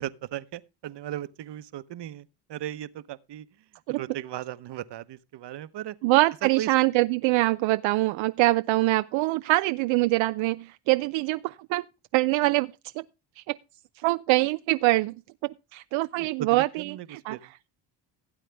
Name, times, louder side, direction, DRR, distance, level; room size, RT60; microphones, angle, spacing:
voice 1, 0.0-3.5 3.9-6.0 6.4-6.7 16.2-17.5, right 12 dB, 60° right, 1.0 m, -37 dB
voice 2, 6.0-11.8 12.1-13.0 13.5-13.6 14.0-15.2 15.4-17.4, right 19 dB, 85° right, 0.5 m, -24 dB
16.5 x 8.3 x 3.4 m
supercardioid pair, 70°, 46 cm